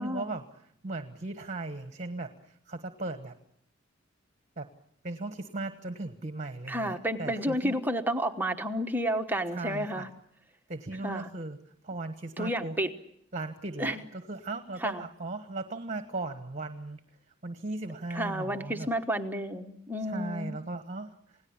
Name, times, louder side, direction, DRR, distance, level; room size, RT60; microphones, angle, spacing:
voice 1, 0.0-3.4 4.6-4.7 5.0-7.8 9.5-10.1 10.7-11.6 11.8-12.8 13.3-17.0 17.4-18.9 20.0-21.4, right 2 dB, 40° right, 8 dB, 1.3 m, -37 dB
voice 2, 6.7-10.1 11.0-11.3 12.4-12.9 13.8-14.0 14.8-15.0 18.1-20.5, equal, 10° right, 5 dB, 1.2 m, -31 dB
28.5 x 18.0 x 8.7 m, 0.71 s
head